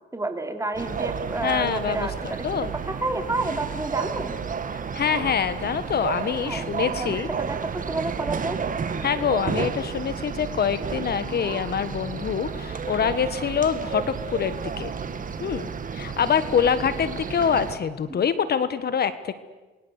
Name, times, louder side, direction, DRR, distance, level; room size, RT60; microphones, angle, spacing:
voice 1, 0.1-2.5 2.8-4.3 6.5-8.6 11.3-11.6 18.1-18.2, right 2 dB, 15° right, 6 dB, 4.1 m, -30 dB
sound 1, 0.7-17.8, right 6 dB, 40° right, 2.3 m, -32 dB
voice 2, 1.4-2.7 4.9-7.3 9.0-14.9 15.4-19.3, left 7 dB, 55° left, 13 dB, 1.5 m, -25 dB
28.5 x 23.0 x 8.3 m, 1.2 s
cardioid pair, 90°, 20 cm